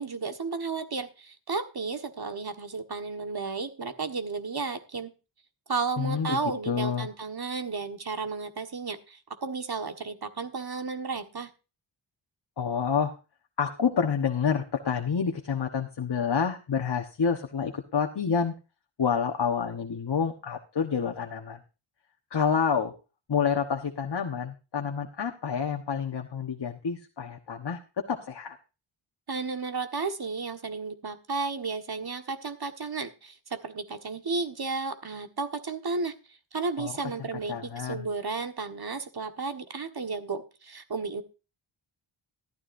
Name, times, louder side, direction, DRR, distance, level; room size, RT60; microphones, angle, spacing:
voice 1, 0.0-5.1 5.7-11.5 29.3-36.1 36.5-41.2, right 4 dB, 50° right, 7 dB, 1.6 m, -33 dB
voice 2, 6.0-6.4 6.7-7.1 12.6-13.1 13.6-18.5 19.0-21.6 22.3-22.9 23.3-27.8 28.1-28.6 36.8-36.9 37.5-38.1, left 6 dB, 55° left, 3 dB, 1.3 m, -28 dB
14.0 x 12.5 x 2.7 m, 0.31 s
wide cardioid pair, 90°, 50 cm